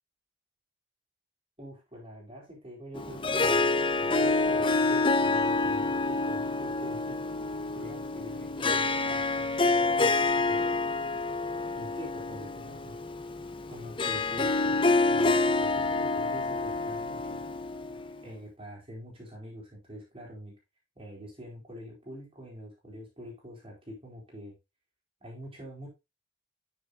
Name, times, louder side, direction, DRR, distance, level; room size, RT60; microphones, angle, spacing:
voice 1, 1.6-10.1 10.5-10.8 11.7-13.0 13.7-17.4 18.2-20.5 21.0-24.5 25.2-25.9, equal, 30° right, -2 dB, 4.3 m, -45 dB
Harp, 2.9-18.2, left 3 dB, 25° left, 0.8 m, -27 dB
12.0 x 7.0 x 2.6 m, 0.24 s
head